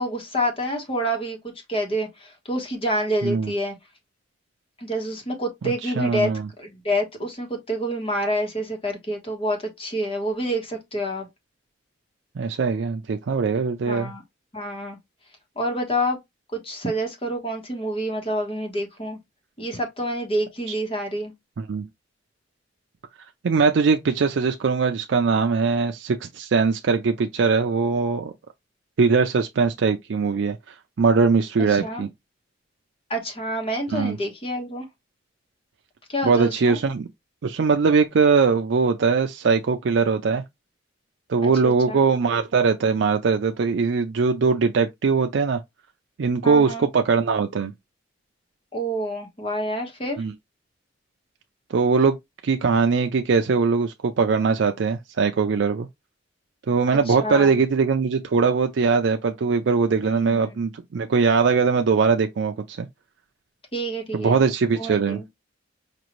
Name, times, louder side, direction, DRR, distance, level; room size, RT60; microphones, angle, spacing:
voice 1, 0.0-1.4 1.7-3.7 4.8-6.3 6.6-11.3 13.9-14.2 14.5-15.0 15.6-16.2 16.5-19.2 19.6-21.3 31.7-32.1 33.1-34.9 36.1-36.8 41.4-42.1 46.4-46.9 48.7-50.2 57.1-57.6 60.0-60.6 63.7-64.4 64.8-65.2, equal, 30° left, 1.2 m, -28 dB
voice 2, 5.6-6.5 12.4-14.1 21.6-21.9 23.4-28.3 29.0-32.1 33.9-34.2 36.2-37.1 37.4-40.4 41.3-45.6 46.2-47.7 50.2-50.3 51.7-52.2 52.4-55.9 56.7-62.9 64.1-65.2, right 5 dB, 70° right, 0.4 m, -21 dB
5.1 x 2.5 x 3.0 m
head